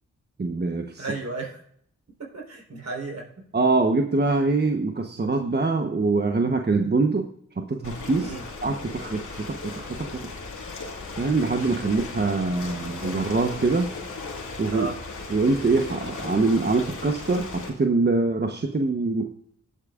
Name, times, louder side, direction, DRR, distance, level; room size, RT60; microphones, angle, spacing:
voice 1, 0.4-1.0 3.5-7.3 7.6-8.3 8.6-10.3 11.2-13.9 14.6-14.9 15.3-19.3, right 3 dB, 35° right, 4 dB, 1.1 m, -24 dB
voice 2, 1.0-1.6 2.2-3.5 8.2-8.4 14.7-14.9, right 3 dB, 60° right, 0 dB, 4.3 m, -34 dB
Ocean, 7.8-17.7, left 3 dB, 75° left, 2.5 m, -37 dB
18.0 x 8.4 x 2.5 m, 0.64 s
cardioid pair, 50°, 31 cm